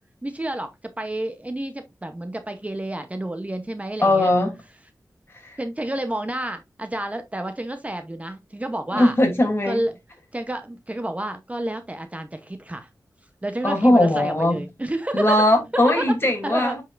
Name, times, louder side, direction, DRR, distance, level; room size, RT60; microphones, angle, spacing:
voice 1, 0.2-0.7 1.0-4.3 5.6-9.1 9.7-9.9 10.3-12.9 13.4-15.4 16.0-16.1 16.4-16.8, right 1 dB, 20° right, 0.9 m, -30 dB
voice 2, 4.0-4.6 5.4-5.6 8.9-9.8 13.6-14.6 15.1-16.8, left 1 dB, 35° left, 3.0 m, -19 dB
8.0 x 5.5 x 2.5 m
wide cardioid pair, 85°, 7 cm